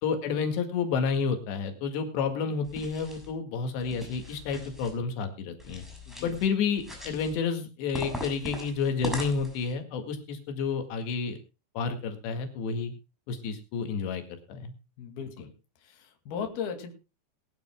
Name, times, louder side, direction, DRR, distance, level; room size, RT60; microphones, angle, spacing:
voice 1, 0.0-5.8 6.2-11.4 11.8-12.9 13.3-14.2 14.5-14.7, left 5 dB, 90° left, 6 dB, 4.2 m, -30 dB
sound 1, 2.6-3.3 3.8-4.9 5.6-6.5 6.8-7.4 7.9-9.7, left 1 dB, ahead, 6.8 m, -40 dB
voice 2, 15.0-15.5 15.8-16.9, left 7 dB, 65° left, 5 dB, 4.0 m, -37 dB
21.0 x 13.5 x 2.2 m, 0.30 s
omnidirectional pair, 4.8 m